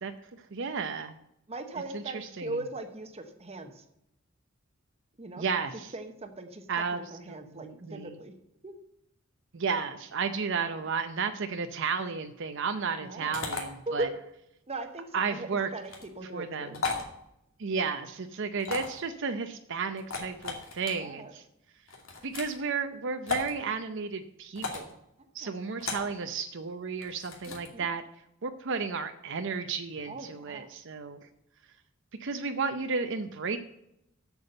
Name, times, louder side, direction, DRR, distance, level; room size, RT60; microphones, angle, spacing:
voice 1, 0.5-1.1 1.9-2.6 5.4-5.9 6.7-7.0 7.3-8.1 9.5-14.1 15.1-15.7 16.3-16.8 17.6-21.4 22.2-25.0 25.3-28.0 28.4-31.2 32.2-33.6, right 5 dB, 60° right, 8 dB, 0.6 m, -33 dB
voice 2, 1.5-3.8 5.2-5.4 5.9-8.3 8.6-8.7 13.0-13.4 13.9-14.1 14.7-15.9 16.2-17.0 21.0-21.3 25.4-25.5 25.9-26.3 27.5-27.9 30.1-30.7, right 2 dB, 30° right, 6 dB, 0.9 m, -39 dB
sound 1, 13.3-13.6 15.8-16.1 16.7-17.1 18.6-19.0 20.0-20.9 21.9-22.5 23.3-23.5 24.5-24.9 25.8-26.1 27.0-27.7, left 4 dB, 75° left, 2.4 m, -35 dB
8.1 x 7.1 x 7.8 m, 0.80 s
head